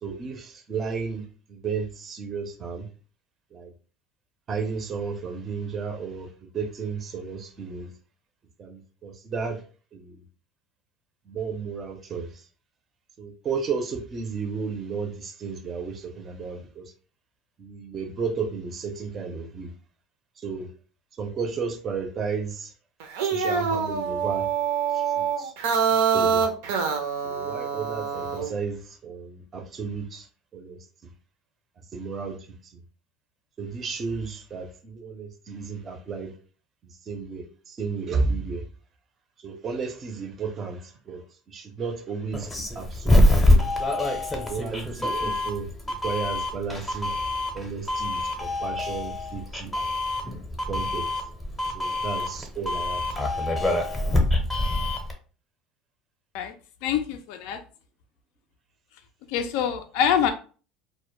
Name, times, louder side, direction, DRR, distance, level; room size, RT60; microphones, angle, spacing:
voice 1, 0.0-2.9 3.5-3.7 4.5-6.3 6.5-7.9 8.6-9.6 9.9-10.2 11.3-12.3 13.2-16.8 17.6-19.7 20.4-20.7 21.2-22.7 23.2-24.5 24.9-25.0 25.4-25.5 26.1-26.4 27.2-30.3 30.5-30.8 31.9-32.4 32.7-32.8 33.6-36.3 36.8-38.6 39.4-43.3 44.5-47.1 47.5-50.0 50.7-51.1 51.7-53.0 53.3-53.4, right 5 dB, 30° right, 5 dB, 0.5 m, -33 dB
sound 1, 23.0-28.5, right 6 dB, 85° right, 0.5 m, -25 dB
Doorbell, 42.3-55.1, left 1 dB, 10° left, 0.6 m, -25 dB
voice 2, 56.8-57.6 59.3-60.3, left 8 dB, 70° left, 7 dB, 0.3 m, -25 dB
2.1 x 2.0 x 3.0 m, 0.38 s
supercardioid pair, 125°, 0 cm